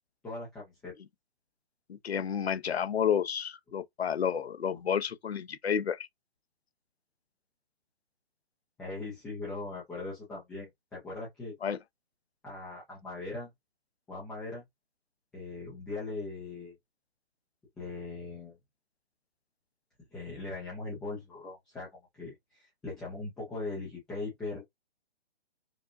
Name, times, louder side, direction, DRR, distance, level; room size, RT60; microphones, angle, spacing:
voice 1, 0.2-0.9 8.8-11.5 12.4-13.5 14.1-14.6 15.3-16.7 17.8-18.5 20.1-21.9 22.2-24.6, left 3 dB, ahead, 0.4 m, -40 dB
voice 2, 1.9-6.1 11.6-11.8, left 8 dB, 85° left, 0.8 m, -30 dB
5.1 x 2.2 x 2.6 m
hypercardioid pair, 155°, 31 cm